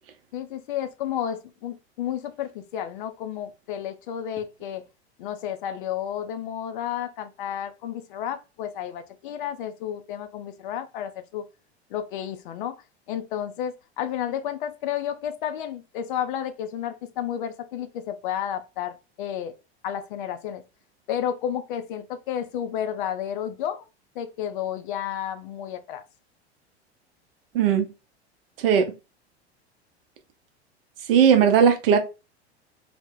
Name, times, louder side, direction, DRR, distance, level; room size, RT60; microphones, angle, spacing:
voice 1, 0.3-4.8 5.2-11.4 11.9-19.5 19.8-20.6 21.1-23.9 24.2-26.0, left 10 dB, 50° left, 0.4 m, -31 dB
voice 2, 27.5-27.9 28.6-28.9 31.1-32.0, right 7 dB, 60° right, 0.7 m, -17 dB
2.1 x 2.1 x 3.4 m
figure-of-eight pair, 80°, 33 cm